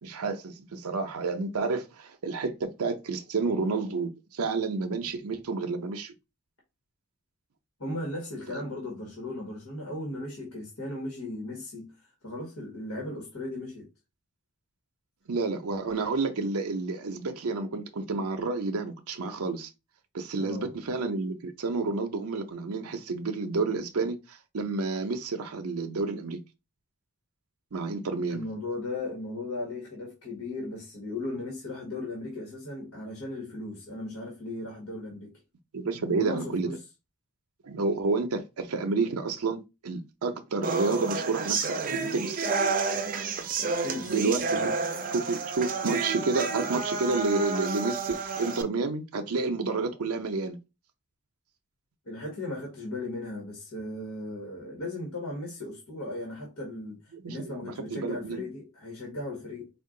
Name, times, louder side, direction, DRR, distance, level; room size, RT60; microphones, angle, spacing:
voice 1, 0.0-6.1 8.5-8.6 15.3-19.7 20.1-26.4 27.7-28.4 35.7-36.8 37.6-41.8 42.1-42.5 44.1-44.7 45.1-50.6 57.1-58.4, right 3 dB, 85° right, 0.6 m, -30 dB
voice 2, 7.8-11.9 12.2-13.9 20.4-20.7 28.3-35.3 36.1-36.8 43.6-44.2 44.5-44.8 52.0-57.0 57.3-59.7, left 2 dB, 70° left, 1.5 m, -37 dB
sound 1, 40.6-48.6, right 4 dB, 40° right, 0.5 m, -30 dB
4.4 x 2.4 x 3.7 m
head